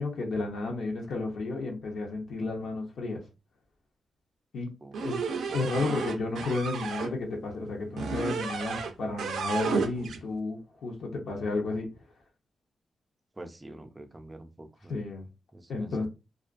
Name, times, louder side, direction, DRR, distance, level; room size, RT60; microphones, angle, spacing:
voice 1, 0.0-3.2 4.5-4.7 5.0-11.9 14.9-15.2 15.7-16.1, left 3 dB, 75° left, 0.6 m, -32 dB
sound 1, 4.9-7.1 8.0-8.9 9.2-10.2, right 5 dB, 90° right, 0.3 m, -32 dB
voice 2, 13.4-15.0 15.5-16.1, right 1 dB, 20° right, 0.4 m, -46 dB
2.3 x 2.2 x 2.4 m
cardioid pair, 85°, 0 cm